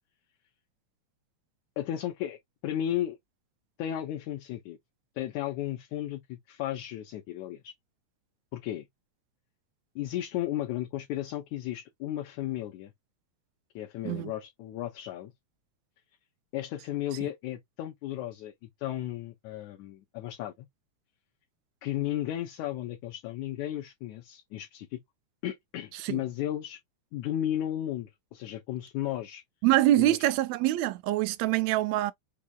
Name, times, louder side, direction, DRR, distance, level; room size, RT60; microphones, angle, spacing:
voice 1, 1.8-3.2 3.8-4.8 5.2-7.7 8.5-8.9 10.0-12.9 13.8-15.3 16.5-20.7 21.8-25.0 25.4-26.8 27.1-29.4 30.0-30.3, left 12 dB, 75° left, 2.1 m, -34 dB
voice 2, 29.6-32.1, right 15 dB, 80° right, 1.6 m, -25 dB
5.5 x 3.5 x 2.3 m
omnidirectional pair, 3.6 m